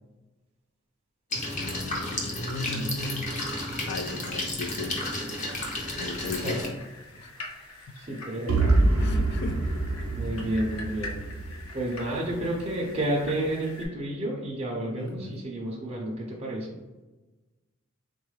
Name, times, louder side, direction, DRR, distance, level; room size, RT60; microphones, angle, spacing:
sound 1, 1.3-6.7, left 1 dB, 35° left, 0.7 m, -32 dB
voice 1, 1.6-3.4 3.8-5.0 6.0-6.8 7.2-7.3 9.0-9.7 10.3-10.5 15.0-15.5, left 3 dB, 50° left, 9 dB, 0.3 m, -36 dB
voice 2, 2.7-3.1 6.4-6.7 7.9-8.6 10.2-11.2 11.7-16.8, right 1 dB, 30° right, -3 dB, 0.5 m, -31 dB
sound 2, 4.8-13.9, left 2 dB, 80° left, 0.7 m, -45 dB
sound 3, 8.5-12.4, right 2 dB, 90° right, 0.6 m, -26 dB
3.9 x 2.3 x 3.1 m, 1.2 s
head